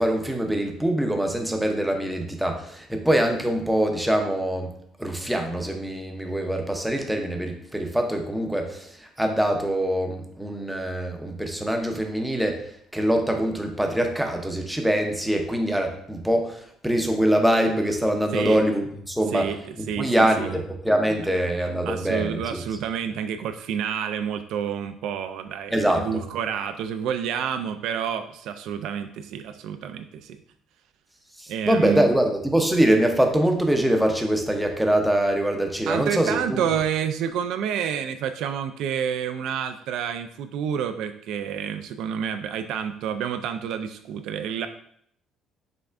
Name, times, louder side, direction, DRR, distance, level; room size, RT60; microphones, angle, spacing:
voice 1, 0.0-4.7 5.0-8.9 9.2-12.6 12.9-19.5 20.0-22.6 25.7-26.0 31.4-36.7, right 1 dB, 5° right, 3 dB, 0.6 m, -23 dB
voice 2, 19.3-20.6 21.9-30.4 31.5-32.1 35.9-44.7, right 8 dB, 70° right, 8 dB, 0.3 m, -29 dB
5.5 x 3.5 x 2.4 m, 0.67 s
cardioid pair, 140°, 0 cm